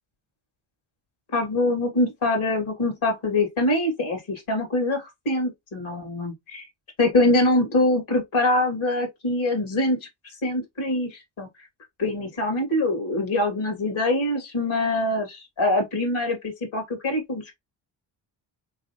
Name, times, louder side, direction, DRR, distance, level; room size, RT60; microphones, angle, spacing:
voice 1, 1.3-6.6 7.0-10.0 10.4-11.5 12.0-17.6, left 2 dB, 70° left, 2.4 m, -24 dB
4.0 x 3.5 x 2.9 m
supercardioid pair, 50°, 49 cm